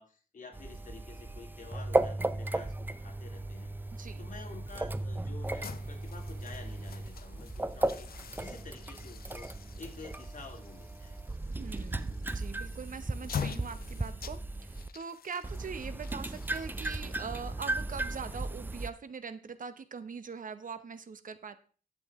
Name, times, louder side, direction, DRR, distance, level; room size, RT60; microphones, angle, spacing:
voice 1, 0.0-9.5 9.8-11.2, left 4 dB, 60° left, 2 dB, 2.2 m, -50 dB
sound 1, 0.5-14.9 15.4-18.9, right 2 dB, 15° right, 0.5 m, -36 dB
voice 2, 3.9-4.3 11.5-21.6, right 5 dB, 60° right, 12 dB, 0.8 m, -42 dB
sound 2, 5.4-18.5, left 7 dB, 80° left, 0.7 m, -45 dB
11.5 x 7.8 x 3.6 m, 0.40 s
wide cardioid pair, 120°, 15 cm